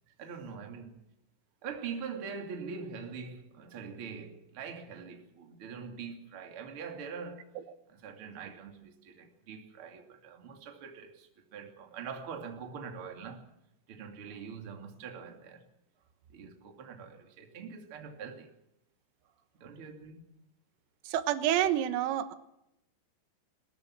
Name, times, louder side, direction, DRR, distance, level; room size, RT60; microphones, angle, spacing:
voice 1, 0.2-1.0 1.6-7.5 7.9-13.5 13.9-15.7 16.3-18.5 19.2-20.3, right 6 dB, 35° right, 2.4 m, -43 dB
voice 2, 21.1-22.4, right 11 dB, 90° right, 4.0 m, -28 dB
22.0 x 20.5 x 6.1 m
omnidirectional pair, 5.9 m